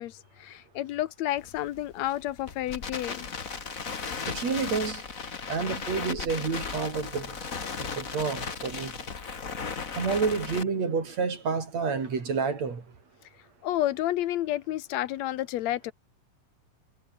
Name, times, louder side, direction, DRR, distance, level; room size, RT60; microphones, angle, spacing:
voice 1, 0.0-3.5 3.8-4.3 13.6-15.9, left 14 dB, 70° left, 2.1 m, -31 dB
Crackle, 1.4-10.6, left 5 dB, 30° left, 1.9 m, -36 dB
voice 2, 4.3-5.0 5.5-7.3 8.0-8.9 10.0-12.8, right 5 dB, 60° right, 5.6 m, -29 dB
omnidirectional pair, 3.4 m